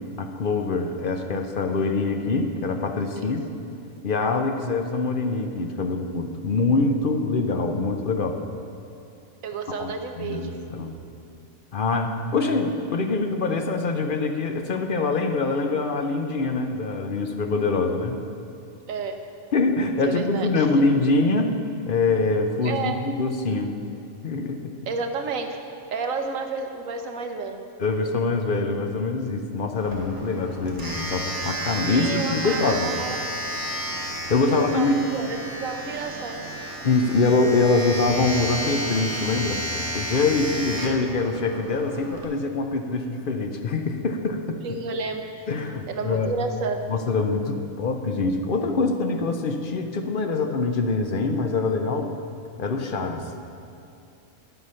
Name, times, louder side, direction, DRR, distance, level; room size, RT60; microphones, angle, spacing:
voice 1, 0.2-3.4 4.0-8.4 9.8-9.9 10.2-10.9 11.7-18.2 19.5-21.6 21.9-23.7 24.2-24.7 27.8-32.9 34.3-34.9 36.8-39.7 39.9-44.6 45.5-46.3 46.9-52.1 52.6-53.3, left 3 dB, 50° left, 5 dB, 0.7 m, -24 dB
voice 2, 9.4-10.6 18.9-19.2 20.0-20.7 22.6-22.9 24.9-25.6 25.9-27.6 31.9-33.5 34.5-36.4 40.6-40.7 44.6-45.5 45.9-46.8, right 4 dB, 75° right, 4 dB, 1.3 m, -31 dB
Domestic sounds home sounds, 29.8-42.2, right 1 dB, 15° right, 1.1 m, -32 dB
10.5 x 8.0 x 5.6 m, 2.7 s
omnidirectional pair, 1.4 m